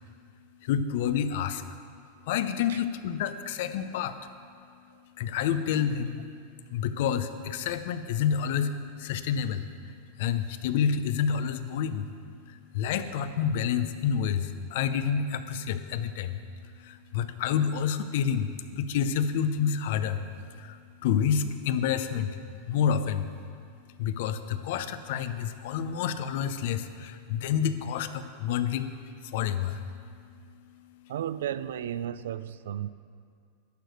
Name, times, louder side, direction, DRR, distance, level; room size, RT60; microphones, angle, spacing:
voice 1, 0.6-1.8 2.3-4.2 5.2-6.2 6.7-12.1 12.5-16.4 16.8-20.2 20.6-22.4 22.7-23.3 24.0-29.9, left 8 dB, 65° left, 0.6 m, -29 dB
voice 2, 31.1-32.9, right 10 dB, 85° right, 0.3 m, -33 dB
11.5 x 5.0 x 7.8 m
supercardioid pair, 130°, 0 cm